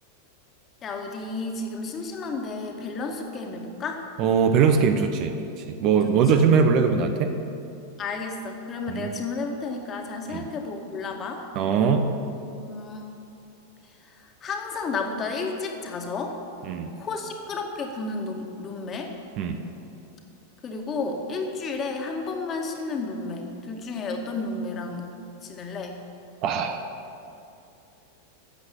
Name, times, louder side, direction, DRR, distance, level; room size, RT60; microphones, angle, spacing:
voice 1, 0.8-4.0 6.0-6.4 8.0-11.4 12.6-13.1 14.4-16.4 17.0-19.1 20.6-25.1 25.4-26.0, left 3 dB, 25° left, 3 dB, 1.9 m, -32 dB
voice 2, 4.2-5.4 5.7-7.3 8.9-9.1 10.3-10.5 11.5-12.1 16.6-16.9 19.4-19.6 26.4-26.8, right 6 dB, 40° right, 7 dB, 1.0 m, -21 dB
13.5 x 8.0 x 8.6 m, 2.6 s
figure-of-eight pair, 90°, 0 cm